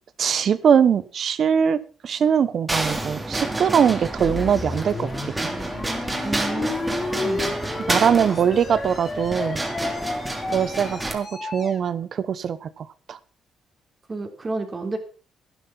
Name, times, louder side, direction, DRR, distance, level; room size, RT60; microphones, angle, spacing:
voice 1, 0.2-1.8 2.0-5.1 7.9-9.6 10.5-13.2, right 7 dB, 55° right, 16 dB, 1.0 m, -21 dB
sound 1, 2.7-11.1, right 2 dB, 15° right, 3.1 m, -29 dB
sound 2, 4.0-11.8, left 3 dB, 35° left, 3.6 m, -32 dB
voice 2, 6.2-7.5 14.1-15.0, right 3 dB, 30° right, 4 dB, 3.5 m, -31 dB
12.0 x 10.5 x 5.9 m, 0.37 s
cardioid pair, 90°, 0 cm